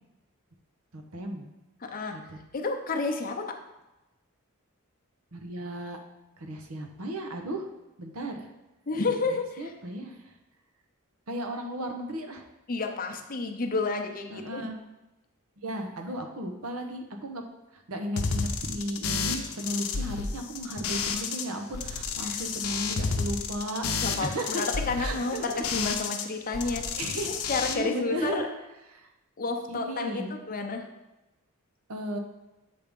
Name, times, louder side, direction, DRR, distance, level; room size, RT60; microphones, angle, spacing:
voice 1, 0.9-1.5 2.1-2.4 5.3-6.0 6.4-7.7 8.0-8.5 9.3-10.3 11.3-12.4 14.3-14.8 15.6-17.4 17.7-24.6 25.0-25.6 27.0-27.4 27.7-28.5 28.9-29.1 29.7-30.3 31.9-32.2, right 1 dB, 70° right, 4 dB, 0.9 m, -35 dB
voice 2, 1.8-2.1 2.5-3.4 8.9-9.7 12.7-14.6 22.2-22.4 24.0-27.0 27.5-28.5 29.4-30.9, left 3 dB, 40° left, 3 dB, 0.7 m, -30 dB
sound 1, 18.2-21.4 21.7-26.2 26.5-27.7, left 5 dB, 75° left, 0.7 m, -31 dB
7.7 x 3.5 x 5.3 m, 0.99 s
head